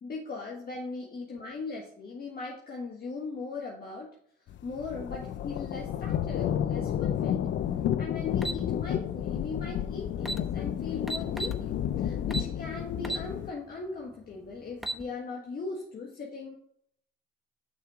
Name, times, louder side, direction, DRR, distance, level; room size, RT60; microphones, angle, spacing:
voice 1, 0.0-4.1 4.6-7.4 8.0-16.6, left 4 dB, 50° left, -1 dB, 1.5 m, -39 dB
sound 1, 4.5-13.5, left 10 dB, 65° left, 0.6 m, -31 dB
sound 2, 8.4-8.6 9.8-9.9 10.2-10.4 11.1-11.6 12.3-12.5 13.0-13.3 13.7-13.8 14.6-15.0, right 2 dB, ahead, 0.9 m, -33 dB
7.1 x 6.0 x 3.6 m, 0.64 s
cardioid pair, 90°, 20 cm